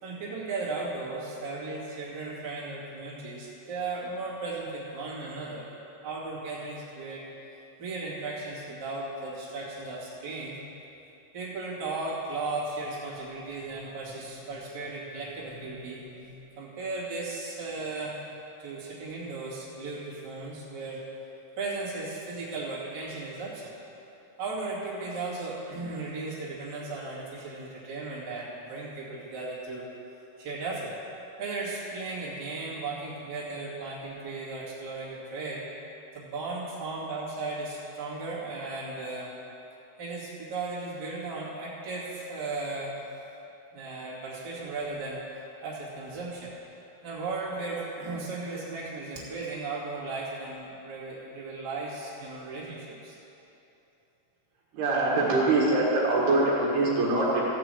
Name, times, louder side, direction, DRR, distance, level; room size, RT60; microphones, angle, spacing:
voice 1, 0.0-5.6 6.0-7.2 7.8-10.5 11.3-18.1 18.6-21.0 21.6-23.7 24.4-29.9 30.4-31.0 31.4-35.6 36.1-39.3 40.0-43.0 43.7-45.2 45.6-46.5 47.0-53.2, right 3 dB, 30° right, -9 dB, 2.1 m, -36 dB
voice 2, 54.7-57.5, right 2 dB, 65° right, -6 dB, 3.2 m, -24 dB
15.0 x 5.1 x 7.8 m, 3.0 s
omnidirectional pair, 5.6 m